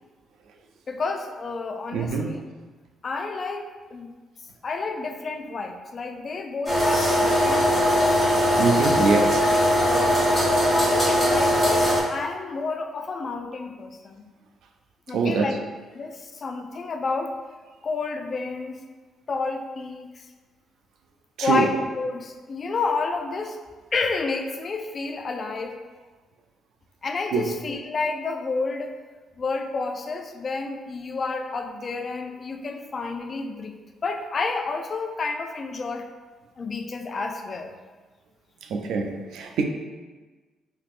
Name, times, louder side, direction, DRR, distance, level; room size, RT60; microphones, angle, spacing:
voice 1, 0.9-2.4 3.0-4.1 4.6-8.2 9.4-9.5 9.8-10.2 10.7-14.2 15.1-15.6 15.9-17.3 17.8-18.8 19.3-20.3 21.4-23.6 23.9-25.8 27.0-28.9 29.4-33.8 34.0-36.1 36.6-37.7, left 4 dB, 45° left, 0.3 m, -30 dB
voice 2, 1.9-2.4 8.5-9.4 15.1-15.5 21.4-21.7 27.3-27.5 38.7-39.6, right 4 dB, 75° right, 0.3 m, -24 dB
sound 1, 6.7-12.0, equal, ahead, 1.3 m, -20 dB
3.6 x 2.8 x 2.4 m
cardioid pair, 90°, 0 cm